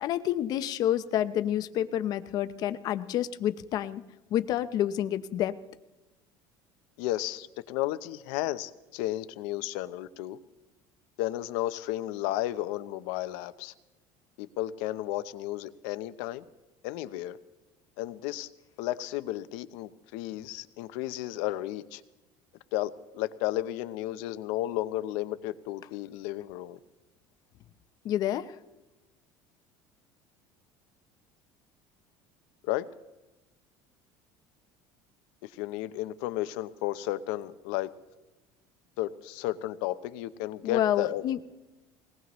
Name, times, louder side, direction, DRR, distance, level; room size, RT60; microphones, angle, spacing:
voice 1, 0.0-4.0 4.3-5.5 28.0-28.5 40.6-41.4, left 11 dB, 45° left, 11 dB, 0.8 m, -28 dB
voice 2, 7.0-10.4 11.2-13.7 14.4-16.4 16.8-17.4 18.0-18.5 18.8-22.0 22.7-26.8 32.7-32.9 35.4-37.9 39.0-41.2, left 15 dB, 80° left, 12 dB, 0.7 m, -33 dB
20.5 x 19.0 x 3.1 m, 1.0 s
cardioid pair, 150°, 9 cm